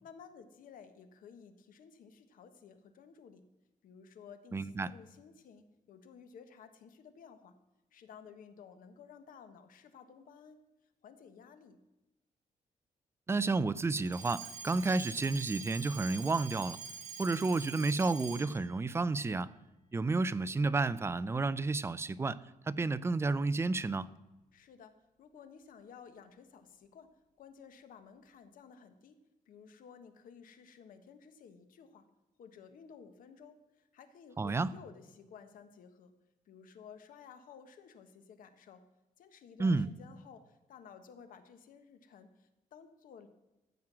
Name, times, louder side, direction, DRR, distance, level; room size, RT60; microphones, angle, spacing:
voice 1, 0.0-3.4 3.8-7.6 7.9-10.6 11.0-11.8 24.5-27.1 27.4-29.2 29.5-32.1 32.4-36.1 36.4-38.8 39.2-43.3, left 6 dB, 75° left, 1.3 m, -55 dB
voice 2, 4.5-4.9 13.3-16.8 17.2-19.5 19.9-24.1 34.4-34.7 39.6-39.9, right 3 dB, 20° right, 0.4 m, -31 dB
Alarm, 14.0-18.7, right 5 dB, 55° right, 1.6 m, -45 dB
14.5 x 7.4 x 6.1 m
cardioid pair, 135°, 14 cm